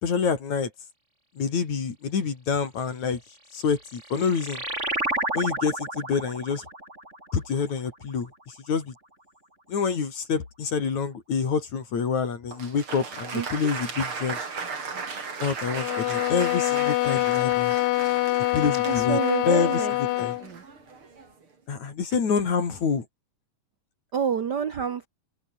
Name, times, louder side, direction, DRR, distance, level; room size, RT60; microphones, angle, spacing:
voice 1, 0.0-0.7 1.4-3.2 3.5-4.6 5.3-6.7 7.3-8.9 9.7-14.4 15.4-17.7 18.5-19.2 19.4-19.8 20.2-20.4 21.7-23.1, left 6 dB, 60° left, 4.9 m, -27 dB
sound 1, 3.6-8.7, right 1 dB, 20° right, 7.4 m, -32 dB
Applause, 12.5-21.4, right 5 dB, 40° right, 4.2 m, -36 dB
sound 2, 15.7-20.5, left 19 dB, 85° left, 1.6 m, -25 dB
voice 2, 18.8-19.9 20.4-20.6 24.1-25.1, right 7 dB, 85° right, 0.9 m, -28 dB
open air
omnidirectional pair, 3.8 m